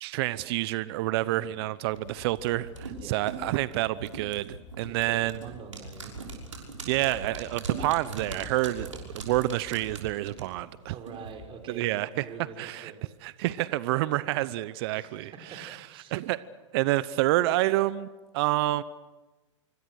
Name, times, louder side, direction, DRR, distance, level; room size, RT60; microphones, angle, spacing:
voice 1, 0.0-5.4 6.9-8.9 9.1-10.9 11.7-12.2 12.6-12.9 13.2-15.3 15.6-15.7 16.1-16.4 16.7-18.1 18.3-18.8, right 17 dB, 55° right, 17 dB, 0.8 m, -28 dB
voice 2, 1.2-1.6 2.9-3.1 4.8-6.2 10.9-13.0 14.9-16.2, right 5 dB, 35° right, 4 dB, 5.6 m, -45 dB
sound 1, 1.9-11.3 11.6-11.7, right 3 dB, 90° right, 5.9 m, -40 dB
25.5 x 24.5 x 6.4 m, 1.2 s
hypercardioid pair, 105°, 16 cm